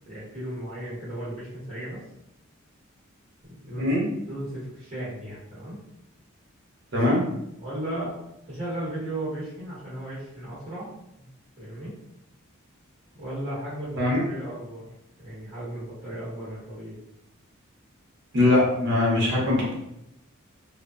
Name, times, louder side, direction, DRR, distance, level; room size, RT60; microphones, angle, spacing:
voice 1, 0.1-2.0 3.4-3.9 4.3-5.8 7.6-8.1 8.5-10.9 11.2-11.3 11.6-12.0 13.1-14.9 15.2-17.0, right 1 dB, 35° right, -10 dB, 1.3 m, -35 dB
voice 2, 18.3-19.7, left 2 dB, 60° right, -4 dB, 0.9 m, -21 dB
2.7 x 2.1 x 2.2 m, 0.80 s
head